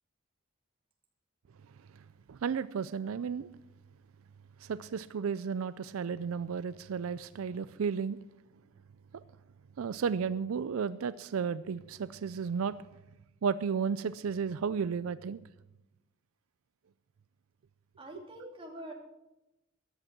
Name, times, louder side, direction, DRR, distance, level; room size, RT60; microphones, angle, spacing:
voice 1, 2.3-3.5 4.6-8.2 9.1-9.2 9.8-12.8 13.4-15.4, right 6 dB, 85° right, 15 dB, 0.4 m, -33 dB
voice 2, 18.0-18.9, right 1 dB, 25° right, 0 dB, 2.7 m, -45 dB
14.0 x 10.5 x 6.0 m, 0.95 s
head